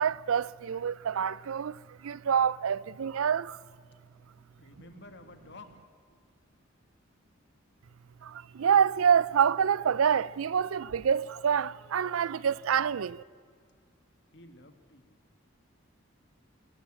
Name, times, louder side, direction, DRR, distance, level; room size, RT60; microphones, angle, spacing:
voice 1, 0.0-1.8 2.0-3.6 8.2-13.2, right 7 dB, 90° right, 0.4 m, -27 dB
voice 2, 4.6-5.8 6.1-6.2 14.3-15.2, left 2 dB, 55° left, 1.8 m, -52 dB
21.0 x 18.5 x 7.5 m
head